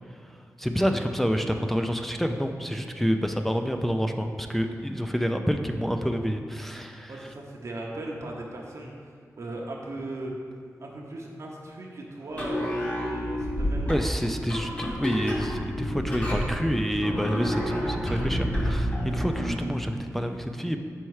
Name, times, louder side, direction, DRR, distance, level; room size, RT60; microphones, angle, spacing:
voice 1, 0.2-7.1 13.8-20.8, equal, 5° left, 5 dB, 0.3 m, -28 dB
voice 2, 7.1-10.3 10.8-14.0, right 2 dB, 55° right, -2 dB, 0.7 m, -37 dB
sound 1, 12.3-19.6, equal, 25° left, 1.1 m, -29 dB
5.6 x 4.5 x 4.7 m, 2.1 s
wide cardioid pair, 115°, 6 cm